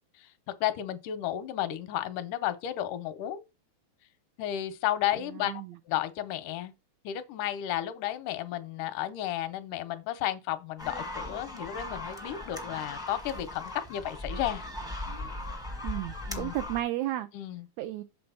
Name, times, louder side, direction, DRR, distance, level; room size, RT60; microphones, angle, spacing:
voice 1, 0.6-3.4 4.4-6.7 7.0-14.7 16.3-16.5 17.3-17.7, left 12 dB, 90° left, 2.3 m, -33 dB
voice 2, 5.3-5.7 15.8-17.3 17.8-18.0, right 14 dB, 80° right, 1.7 m, -33 dB
sound 1, 10.8-16.8, left 1 dB, 5° right, 0.4 m, -38 dB
7.8 x 4.1 x 5.5 m
omnidirectional pair, 3.5 m